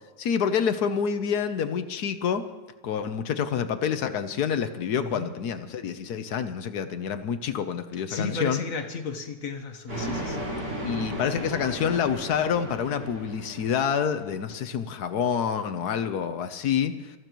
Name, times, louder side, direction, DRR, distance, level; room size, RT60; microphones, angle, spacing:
voice 1, 0.2-2.5 2.8-8.6 10.8-17.1, left 7 dB, 70° left, 9 dB, 1.3 m, -27 dB
voice 2, 5.0-5.3 8.1-10.5, left 4 dB, 55° left, 5 dB, 1.5 m, -33 dB
sound 1, 9.9-14.4, right 1 dB, 85° right, 5.8 m, -35 dB
28.5 x 14.5 x 3.0 m, 1.2 s
omnidirectional pair, 1.8 m